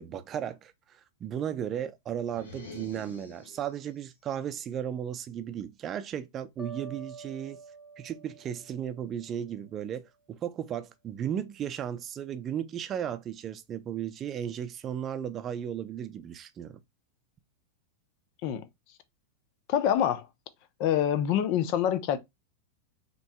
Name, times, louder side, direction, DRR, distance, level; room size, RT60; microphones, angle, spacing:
voice 1, 0.0-7.6 8.0-16.8, right 9 dB, 30° right, 0.5 m, -35 dB
sound 1, 2.3-3.9, left 3 dB, 80° left, 1.5 m, -47 dB
sound 2, 6.6-9.7, right 4 dB, ahead, 1.2 m, -47 dB
voice 2, 19.7-20.2 20.8-22.2, left 10 dB, 50° left, 0.7 m, -26 dB
5.3 x 3.0 x 2.2 m
hypercardioid pair, 95°, 0 cm